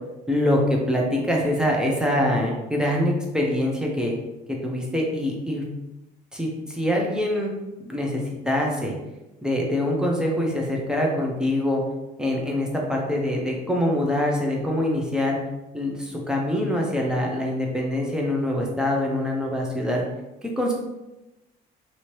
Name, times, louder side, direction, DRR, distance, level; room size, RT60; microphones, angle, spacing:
voice 1, 0.3-4.1 4.6-5.6 6.3-7.5 7.8-8.9 9.4-11.8 12.2-15.4 15.7-20.0 20.4-20.7, left 1 dB, 5° right, -2 dB, 0.6 m, -24 dB
2.9 x 2.7 x 3.0 m, 0.98 s
cardioid pair, 110°, 17 cm